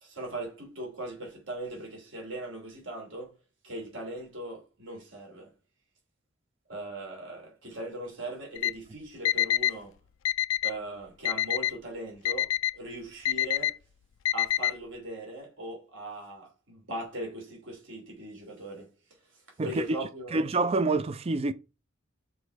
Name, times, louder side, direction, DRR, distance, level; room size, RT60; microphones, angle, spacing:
voice 1, 0.0-3.3 3.6-5.5 6.7-9.9 10.6-13.8 14.3-18.9 19.6-20.4, right 1 dB, 65° right, 3.1 m, -39 dB
Alarm, 8.6-8.7 9.2-9.7 10.2-10.7 11.2-11.7 12.2-12.7 13.2-13.7 14.2-14.7, left 12 dB, 75° left, 0.3 m, -26 dB
voice 2, 20.3-21.5, right 3 dB, 30° right, 0.4 m, -27 dB
6.9 x 4.2 x 4.6 m
head